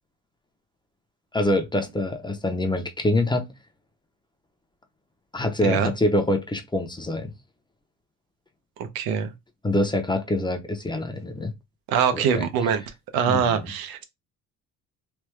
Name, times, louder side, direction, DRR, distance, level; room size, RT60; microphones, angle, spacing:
voice 1, 1.3-3.5 5.3-7.3 9.6-11.5 12.1-12.5 13.3-13.4, left 1 dB, 15° left, 0.7 m, -25 dB
voice 2, 8.8-9.3 11.9-12.8 13.1-14.0, right 7 dB, 90° right, 0.8 m, -23 dB
3.4 x 2.2 x 3.2 m
cardioid pair, 90°, 35 cm